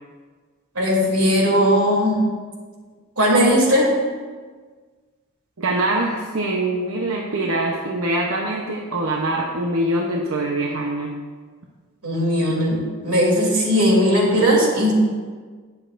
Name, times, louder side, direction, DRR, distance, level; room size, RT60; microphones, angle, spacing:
voice 1, 0.7-2.3 3.2-3.9 12.0-14.9, equal, 90° right, -2 dB, 2.9 m, -18 dB
voice 2, 5.6-11.1 14.8-14.9, right 1 dB, 65° right, -1 dB, 0.8 m, -24 dB
19.5 x 7.2 x 2.6 m, 1.5 s
head